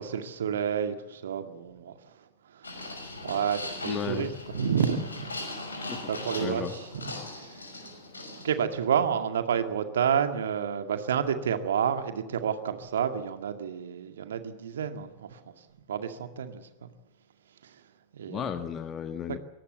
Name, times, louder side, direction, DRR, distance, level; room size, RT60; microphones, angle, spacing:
voice 1, 0.0-5.3 6.1-7.7 8.3-16.9 17.6-17.8 18.1-18.5, right 8 dB, 65° right, 8 dB, 2.1 m, -30 dB
sound 1, 2.6-8.6, left 2 dB, 75° left, 5.8 m, -39 dB
voice 2, 3.8-4.3 5.9-6.0 6.4-6.7 18.3-19.4, left 8 dB, 25° left, 9 dB, 1.5 m, -34 dB
23.0 x 18.5 x 8.2 m, 1.1 s
figure-of-eight pair, 90°, 0 cm